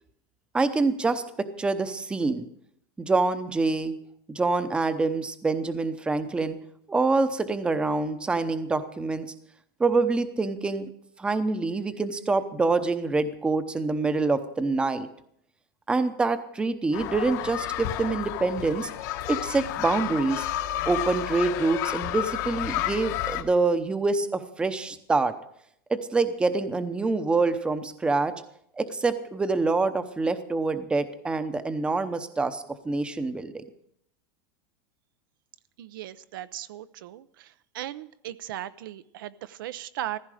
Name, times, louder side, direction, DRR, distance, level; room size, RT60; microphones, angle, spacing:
voice 1, 0.5-2.5 3.0-3.9 4.3-6.6 6.9-9.3 9.8-10.9 11.2-15.1 15.9-18.9 19.3-20.5 20.8-25.3 25.9-28.3 28.8-33.6, right 3 dB, 10° right, 11 dB, 0.8 m, -26 dB
sound 1, 16.9-23.4, left 13 dB, 55° left, 1.3 m, -31 dB
voice 2, 35.8-37.2 37.7-40.2, right 13 dB, 75° right, 14 dB, 0.7 m, -37 dB
15.0 x 15.0 x 4.9 m, 0.72 s
supercardioid pair, 155°, 11 cm